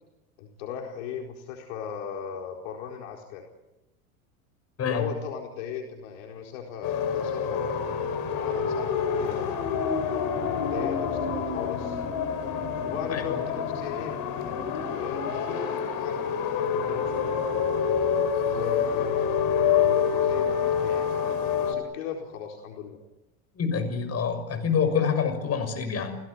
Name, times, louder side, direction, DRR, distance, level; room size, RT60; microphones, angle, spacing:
voice 1, 0.4-3.4 4.8-7.7 8.0-9.4 10.3-12.0 12.8-14.1 15.0-16.2 16.5-17.5 18.4-23.0, left 7 dB, 70° left, 1 dB, 4.5 m, -37 dB
sound 1, 6.8-21.7, left 7 dB, 50° left, 5.0 m, -27 dB
voice 2, 13.1-13.4 23.6-26.2, left 6 dB, 35° left, 8 dB, 6.5 m, -27 dB
28.5 x 18.0 x 9.6 m, 0.96 s
hypercardioid pair, 95°, 42 cm